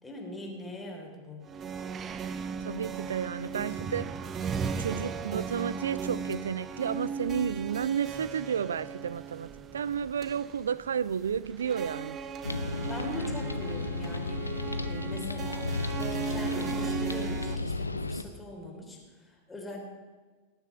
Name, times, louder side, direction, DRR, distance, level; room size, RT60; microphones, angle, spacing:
voice 1, 0.0-1.4 12.9-14.5 14.8-19.8, left 1 dB, 10° left, 3.5 m, -42 dB
sound 1, 1.5-17.6, right 6 dB, 25° right, 0.7 m, -37 dB
voice 2, 2.6-4.2 4.8-12.2, right 7 dB, 65° right, 0.4 m, -32 dB
sound 2, 12.4-18.2, left 2 dB, 80° left, 0.6 m, -33 dB
19.0 x 7.0 x 7.6 m
figure-of-eight pair, 90°, 0 cm